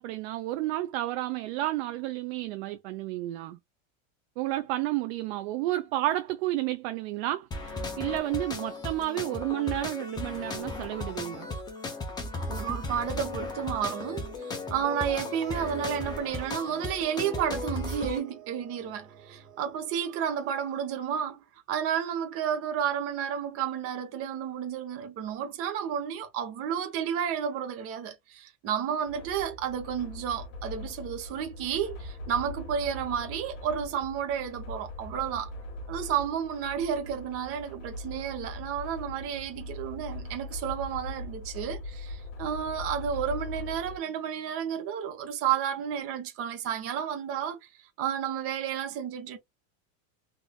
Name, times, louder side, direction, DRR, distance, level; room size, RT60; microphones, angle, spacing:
voice 1, 0.0-3.6 4.4-11.5, right 16 dB, 55° right, 0.5 m, -31 dB
sound 1, 7.5-18.2, left 2 dB, 10° left, 0.5 m, -36 dB
voice 2, 12.5-35.5 35.9-47.6 48.0-49.4, right 8 dB, 35° right, 0.9 m, -31 dB
sound 2, 12.8-20.8, right 8 dB, 75° right, 1.6 m, -51 dB
sound 3, 29.0-44.0, left 2 dB, 65° left, 1.5 m, -41 dB
3.6 x 2.6 x 2.2 m
supercardioid pair, 155°, 40 cm